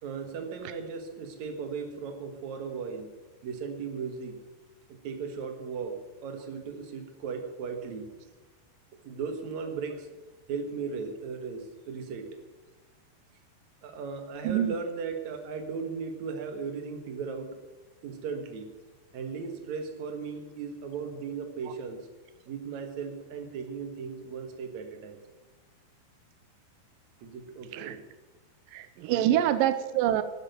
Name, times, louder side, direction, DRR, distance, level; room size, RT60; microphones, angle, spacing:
voice 1, 0.0-3.1 3.4-4.4 4.9-8.1 9.0-10.1 10.5-12.4 13.8-17.6 18.0-18.7 19.1-22.1 22.5-25.2 27.2-28.0 29.1-29.5, right 5 dB, 55° right, 6 dB, 2.4 m, -37 dB
voice 2, 28.7-30.2, right 12 dB, 90° right, 12 dB, 1.9 m, -26 dB
12.5 x 10.0 x 9.2 m, 1.2 s
omnidirectional pair, 4.8 m